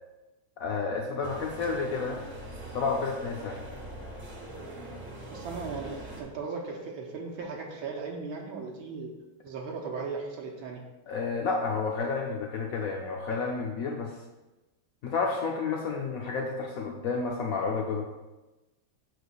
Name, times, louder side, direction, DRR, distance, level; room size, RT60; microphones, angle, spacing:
voice 1, 0.6-2.2 2.7-3.6 11.1-14.1 15.0-18.1, left 4 dB, 85° left, 0 dB, 0.7 m, -30 dB
sound 1, 1.2-6.2, right 1 dB, 35° right, 0.9 m, -42 dB
voice 2, 5.3-9.1 9.4-10.8, right 4 dB, 75° right, -1 dB, 1.6 m, -37 dB
8.2 x 6.4 x 2.3 m, 1.1 s
omnidirectional pair, 2.3 m